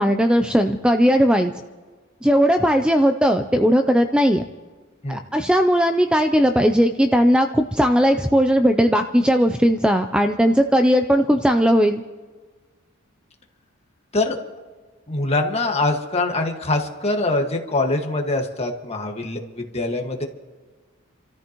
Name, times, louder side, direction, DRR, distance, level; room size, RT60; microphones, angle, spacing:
voice 1, 0.0-1.5 2.2-4.4 5.1-12.0, equal, 5° right, 6 dB, 0.4 m, -18 dB
voice 2, 15.1-20.2, left 2 dB, 30° left, 2 dB, 1.7 m, -23 dB
30.0 x 13.5 x 3.0 m, 1.4 s
head